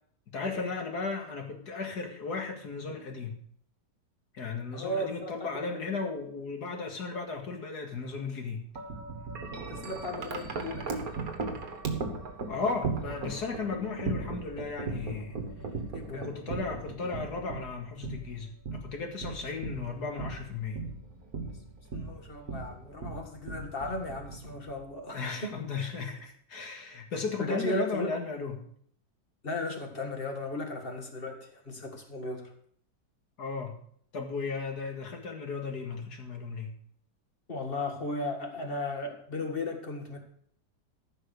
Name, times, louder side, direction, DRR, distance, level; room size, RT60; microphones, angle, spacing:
voice 1, 0.3-3.4 4.3-8.6 12.5-15.5 16.1-20.8 25.1-28.7 33.4-33.8 34.1-36.7, left 4 dB, 65° left, 3 dB, 2.4 m, -35 dB
voice 2, 4.7-5.8 9.5-11.1 15.9-16.3 21.9-25.5 27.4-28.2 29.4-32.5 37.5-40.2, left 1 dB, 30° left, 3 dB, 2.0 m, -36 dB
Wind chime, 8.8-24.9, right 4 dB, 55° right, 1.9 m, -38 dB
14.5 x 5.8 x 6.6 m, 0.63 s
omnidirectional pair, 1.9 m